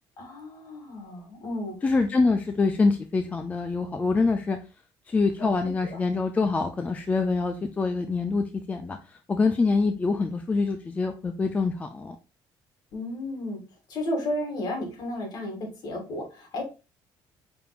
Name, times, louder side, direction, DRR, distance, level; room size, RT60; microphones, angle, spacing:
voice 1, 0.2-1.8 5.4-5.5 5.8-6.0 12.9-13.6 13.9-16.6, left 1 dB, 50° left, 2 dB, 1.8 m, -33 dB
voice 2, 1.8-4.6 5.1-12.2, left 4 dB, 15° left, 6 dB, 0.4 m, -25 dB
5.7 x 3.5 x 2.4 m, 0.31 s
cardioid pair, 145°, 8 cm